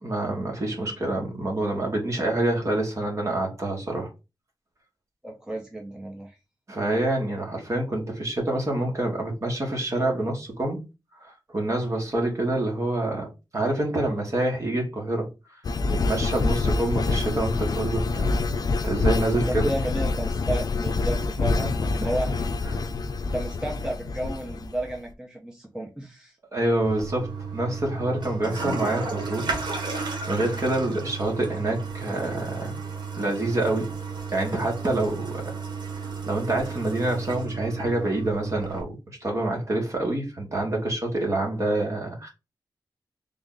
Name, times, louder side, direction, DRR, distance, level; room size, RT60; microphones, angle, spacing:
voice 1, 0.0-4.1 6.7-10.8 11.2-13.3 13.5-15.3 15.9-18.4 18.8-19.7 22.6-22.9 26.5-29.6 29.9-32.8 33.1-33.9 34.3-35.6 36.0-42.3, right 1 dB, 40° right, 1.4 m, -27 dB
voice 2, 5.2-6.4 19.5-22.4 23.2-26.4, right 1 dB, 10° right, 0.6 m, -33 dB
sound 1, 15.6-25.0, left 3 dB, 55° left, 0.4 m, -26 dB
Toilet flush, 26.8-38.8, right 4 dB, 70° right, 1.1 m, -33 dB
3.6 x 2.4 x 3.8 m
wide cardioid pair, 135°, 8 cm